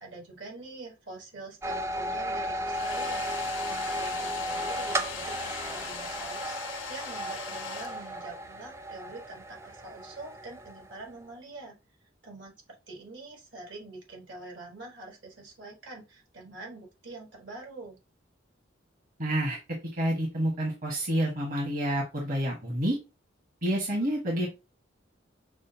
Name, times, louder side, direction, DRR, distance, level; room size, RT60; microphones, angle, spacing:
voice 1, 0.0-11.8 12.2-12.5 12.9-18.0, right 3 dB, 70° right, 0 dB, 1.6 m, -45 dB
sound 1, 1.6-11.2, equal, 15° right, 0.3 m, -35 dB
Domestic sounds home sounds, 2.6-8.5, left 7 dB, 70° left, 0.6 m, -40 dB
voice 2, 19.2-19.6 20.0-23.0 23.6-24.5, right 1 dB, 50° right, -2 dB, 1.3 m, -28 dB
6.1 x 2.1 x 2.7 m, 0.27 s
head